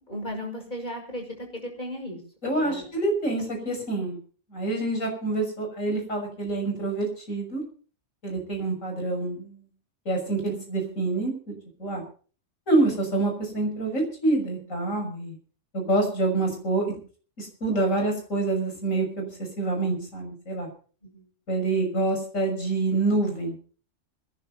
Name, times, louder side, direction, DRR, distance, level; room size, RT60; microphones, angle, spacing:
voice 1, 0.0-2.2 2.6-2.8 21.0-21.3, equal, 35° left, 1 dB, 6.6 m, -36 dB
voice 2, 2.4-4.2 4.5-7.6 8.2-9.5 10.0-11.5 11.8-12.0 12.7-15.4 15.7-16.9 17.4-19.3 19.6-20.7 21.5-23.6, right 2 dB, 80° left, 2 dB, 6.8 m, -26 dB
26.0 x 11.0 x 4.1 m, 0.41 s
omnidirectional pair, 1.3 m